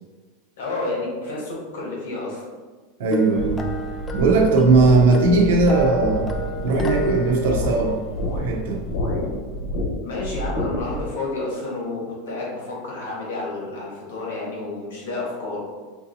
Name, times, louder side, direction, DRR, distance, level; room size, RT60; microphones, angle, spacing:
voice 1, 0.6-2.5 10.0-15.6, left 2 dB, 90° left, -4 dB, 1.4 m, -30 dB
voice 2, 3.0-3.6 4.1-6.3 6.6-8.0 8.4-8.8, right 3 dB, 70° right, 0 dB, 0.7 m, -18 dB
sound 1, 3.1-8.6, equal, 15° left, 0.3 m, -29 dB
sound 2, 3.4-11.1, left 1 dB, 65° left, 1.0 m, -29 dB
4.6 x 2.7 x 2.7 m, 1.4 s
supercardioid pair, 155°, 0 cm